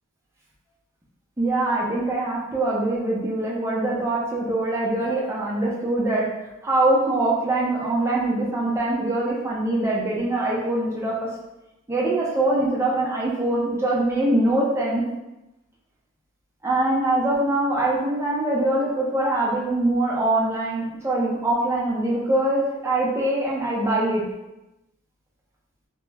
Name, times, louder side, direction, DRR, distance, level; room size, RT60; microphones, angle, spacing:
voice 1, 1.4-6.2 6.6-11.1 11.9-15.0 16.6-24.2, right 2 dB, 10° right, -5 dB, 0.4 m, -23 dB
2.2 x 2.0 x 3.2 m, 0.96 s
head